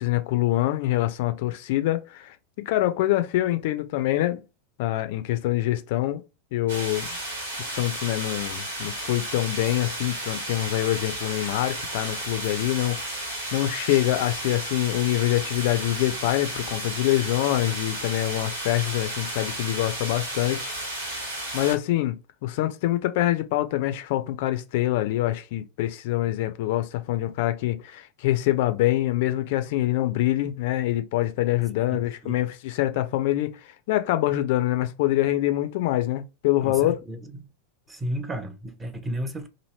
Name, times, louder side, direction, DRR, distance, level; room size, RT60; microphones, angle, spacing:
voice 1, 0.0-4.4 4.8-6.2 6.5-7.1 7.6-20.7 21.5-22.2 22.4-37.0, left 15 dB, 55° left, 0.3 m, -25 dB
sound 1, 6.7-21.8, right 1 dB, 70° right, 1.2 m, -33 dB
voice 2, 36.6-37.5 37.9-39.5, equal, 15° right, 0.5 m, -33 dB
2.9 x 2.6 x 2.8 m
figure-of-eight pair, 85°, 0 cm